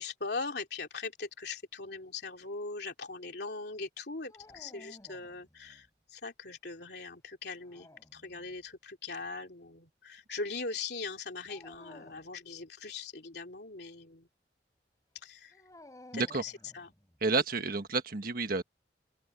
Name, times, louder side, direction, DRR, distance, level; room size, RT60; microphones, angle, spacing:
voice 1, 0.0-14.3 15.2-15.6 16.1-16.9, left 4 dB, 65° left, 3.1 m, -40 dB
sound 1, 4.3-5.9 7.5-8.6 11.5-12.3 15.5-17.2, left 1 dB, 20° left, 4.2 m, -55 dB
voice 2, 16.1-16.4 17.2-18.6, right 3 dB, 55° right, 1.4 m, -30 dB
open air
head